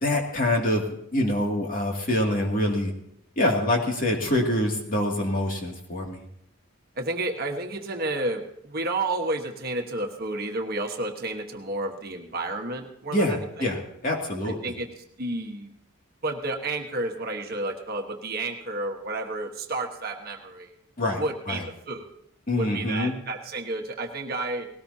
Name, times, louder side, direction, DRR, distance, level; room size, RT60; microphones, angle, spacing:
voice 1, 0.0-0.8 1.1-2.9 3.4-6.2 13.1-14.6 21.0-21.6 22.5-23.1, left 1 dB, 40° left, 0 dB, 2.5 m, -25 dB
voice 2, 7.0-13.7 14.4-14.9 15.2-15.7 16.2-20.7 21.2-22.1 22.6-24.7, right 2 dB, 45° right, 2 dB, 1.4 m, -31 dB
19.5 x 18.0 x 2.9 m, 0.74 s
head